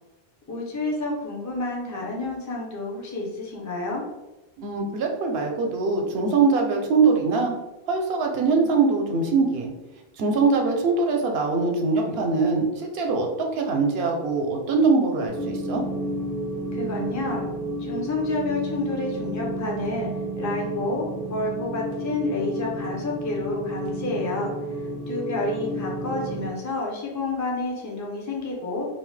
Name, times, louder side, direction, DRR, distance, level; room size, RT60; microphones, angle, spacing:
voice 1, 0.5-4.0 16.7-17.5 17.8-20.1 20.4-24.5 25.1-28.9, left 2 dB, 30° left, -2 dB, 0.3 m, -29 dB
voice 2, 4.6-7.6 7.9-9.7 10.2-15.8, right 4 dB, 75° right, 2 dB, 0.8 m, -22 dB
sound 1, 15.3-26.5, right 1 dB, 90° left, 1.2 m, -31 dB
2.7 x 2.0 x 3.1 m, 1.0 s
omnidirectional pair, 1.0 m